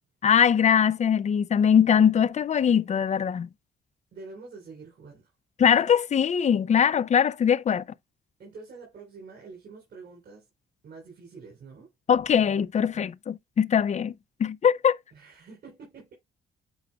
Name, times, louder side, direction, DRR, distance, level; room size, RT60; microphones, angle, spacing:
voice 1, 0.2-3.5 5.6-7.8 12.1-14.1 14.4-15.0, left 8 dB, 35° left, 0.5 m, -21 dB
voice 2, 4.1-5.3 8.4-10.5 10.8-11.9 15.1-16.1, right 4 dB, 55° right, 3.6 m, -46 dB
8.4 x 4.8 x 2.3 m
cardioid pair, 90°, 20 cm